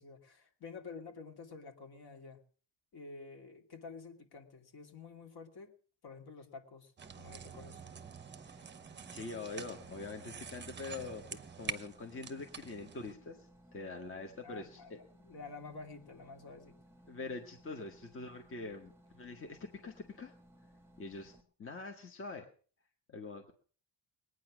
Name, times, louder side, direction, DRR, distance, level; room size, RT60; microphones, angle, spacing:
voice 1, 0.0-2.4 2.9-5.7 6.0-6.9 7.2-7.8 14.4-16.8, left 4 dB, 50° left, 4 dB, 2.6 m, -50 dB
sound 1, 7.0-21.4, equal, 5° right, 1.7 m, -62 dB
sound 2, 7.0-13.1, right 7 dB, 25° right, 0.9 m, -47 dB
voice 2, 8.4-8.7 9.1-15.0 17.1-20.3 21.0-21.3 21.6-22.5 23.1-23.5, left 3 dB, 25° left, 4 dB, 1.4 m, -44 dB
21.0 x 9.5 x 6.1 m, 0.43 s
cardioid pair, 180°, 46 cm